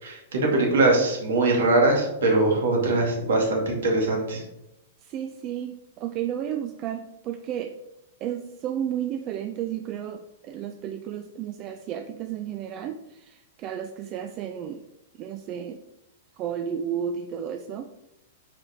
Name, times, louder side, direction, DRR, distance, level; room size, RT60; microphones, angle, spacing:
voice 1, 0.0-4.4, right 2 dB, 80° right, 0 dB, 2.3 m, -22 dB
voice 2, 5.1-7.7 8.2-14.8 15.2-15.8 16.4-17.9, right 9 dB, 35° right, 7 dB, 0.4 m, -32 dB
6.1 x 5.0 x 4.4 m, 0.89 s
hypercardioid pair, 140°, 0 cm